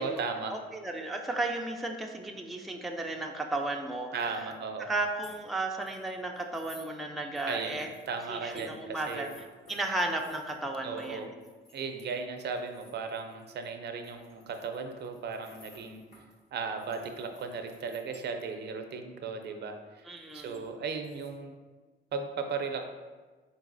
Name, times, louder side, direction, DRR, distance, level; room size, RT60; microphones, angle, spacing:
voice 1, 0.0-0.6 4.1-4.9 7.5-7.8 8.1-9.3 10.8-11.3 11.7-16.0 16.5-20.0 20.3-21.5 22.1-22.9, right 5 dB, 60° right, 6 dB, 0.5 m, -36 dB
voice 2, 0.5-4.5 4.8-7.9 8.3-9.3 9.7-11.3 20.1-20.6, right 2 dB, ahead, 1 dB, 0.4 m, -34 dB
sound 1, 4.2-4.5 4.9-5.4 5.8-6.9 7.3-13.7 14.0-18.5 20.1-21.3, left 1 dB, 60° left, 1.5 m, -57 dB
4.0 x 3.9 x 2.5 m, 1.3 s
cardioid pair, 90°, 20 cm